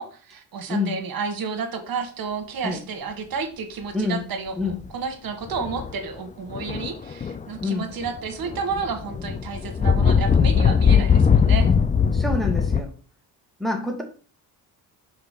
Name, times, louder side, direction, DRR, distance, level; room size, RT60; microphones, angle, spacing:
voice 1, 0.0-11.7, right 5 dB, 60° right, 6 dB, 1.4 m, -31 dB
voice 2, 0.7-1.0 2.6-2.8 3.9-4.2 4.6-4.8 7.6-7.9 12.1-12.9 13.6-14.0, left 3 dB, ahead, 2 dB, 1.6 m, -26 dB
sound 1, 4.6-4.9 5.5-6.0 6.5-7.7 8.0-12.8, left 6 dB, 20° left, 0.4 m, -20 dB
4.8 x 4.0 x 5.1 m, 0.40 s
cardioid pair, 80°, 41 cm